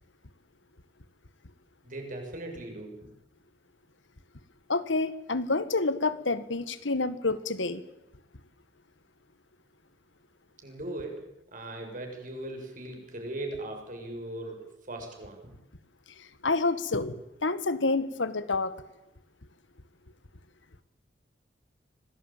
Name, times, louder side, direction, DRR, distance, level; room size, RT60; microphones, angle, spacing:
voice 1, 1.8-3.0 10.6-11.3 11.5-15.5, right 1 dB, 45° right, 6.9 m, -39 dB
voice 2, 4.7-7.8 16.2-18.7, left 3 dB, 80° left, 1.7 m, -28 dB
26.0 x 18.5 x 9.1 m
head